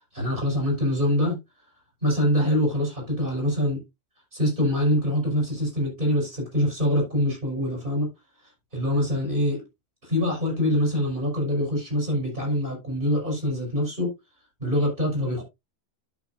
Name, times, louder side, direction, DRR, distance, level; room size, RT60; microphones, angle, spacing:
voice 1, 0.1-1.4 2.0-3.8 4.3-8.1 8.7-9.6 10.0-14.1 14.6-15.4, equal, 55° right, 4.7 m, -24 dB
12.0 x 6.0 x 2.5 m
omnidirectional pair, 1.1 m